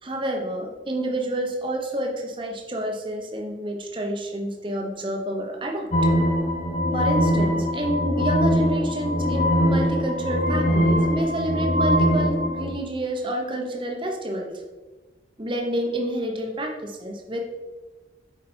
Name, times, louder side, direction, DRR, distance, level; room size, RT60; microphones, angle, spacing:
voice 1, 0.0-5.9 6.9-14.5 15.4-17.4, right 1 dB, 25° right, 1 dB, 1.0 m, -28 dB
sound 1, 5.9-12.7, equal, 45° left, 1.0 m, -22 dB
7.8 x 5.1 x 4.4 m, 1.2 s
head